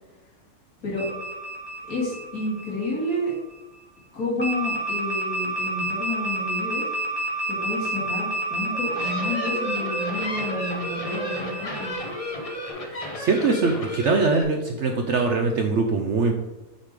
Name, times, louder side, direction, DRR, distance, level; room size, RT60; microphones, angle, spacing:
sound 1, 1.0-3.5 4.4-12.7, right 1 dB, 15° right, 1.5 m, -30 dB
voice 1, 1.9-3.3 4.1-6.8 7.5-11.9, left 1 dB, 75° left, -5 dB, 2.6 m, -30 dB
sound 2, 8.7-14.4, equal, 35° left, 0.6 m, -33 dB
voice 2, 13.2-16.3, right 4 dB, 65° right, 4 dB, 0.7 m, -22 dB
6.4 x 4.9 x 3.6 m, 0.99 s
omnidirectional pair, 1.7 m